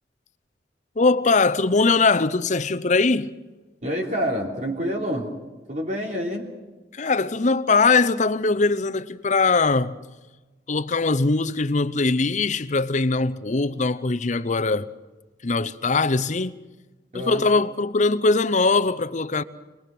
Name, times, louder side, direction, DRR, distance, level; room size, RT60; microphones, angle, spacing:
voice 1, 1.0-3.3 6.9-10.0 10.7-14.9 15.4-16.5 17.1-19.4, left 3 dB, 40° left, 0.7 m, -21 dB
voice 2, 3.8-5.4 5.7-6.6 17.1-17.5, equal, 45° right, 3.3 m, -27 dB
27.5 x 21.0 x 6.0 m
head